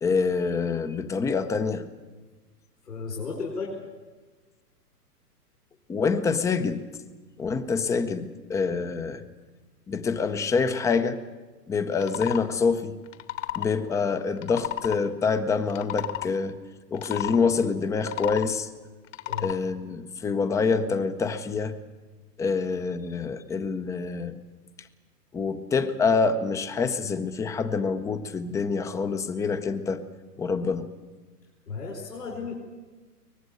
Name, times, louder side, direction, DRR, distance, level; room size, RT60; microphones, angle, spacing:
voice 1, 0.0-1.8 5.9-6.9 7.4-9.2 9.9-11.2 11.7-12.9 13.6-16.6 16.9-18.7 19.4-21.7 22.4-24.3 25.3-30.0 30.4-30.9, left 5 dB, 5° left, 11 dB, 0.6 m, -26 dB
voice 2, 2.9-3.7 19.2-19.5 31.7-32.5, left 4 dB, 75° left, 0 dB, 5.1 m, -34 dB
sound 1, 11.9-12.4 13.1-13.7 14.4-15.0 15.6-16.3 16.9-17.4 17.9-18.5 19.1-19.6, left 14 dB, 50° left, 1.6 m, -32 dB
23.5 x 19.5 x 7.8 m, 1.3 s
figure-of-eight pair, 115°, 48 cm